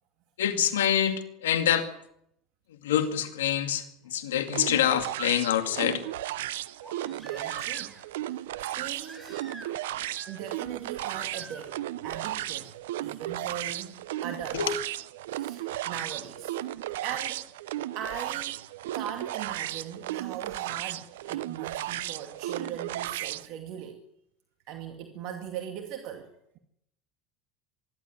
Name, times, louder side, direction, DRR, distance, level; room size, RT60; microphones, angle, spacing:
voice 1, 0.4-1.9 2.7-6.0 14.5-14.7, left 10 dB, 85° left, 2.2 m, -26 dB
Crying sobbing, 4.1-4.2 6.8-8.1 9.0-9.9 10.2-10.7 11.3-11.6 13.2-13.3, right 1 dB, 5° right, 6.6 m, -47 dB
sound 1, 4.5-23.5, right 14 dB, 80° right, 0.8 m, -35 dB
voice 2, 7.1-7.9 8.2-9.3 10.3-12.7 13.0-14.8 15.3-16.5 17.0-17.5 17.9-18.6 18.9-24.1 24.7-26.3, right 9 dB, 60° right, 2.3 m, -40 dB
25.5 x 12.0 x 9.6 m
hypercardioid pair, 85°, 0 cm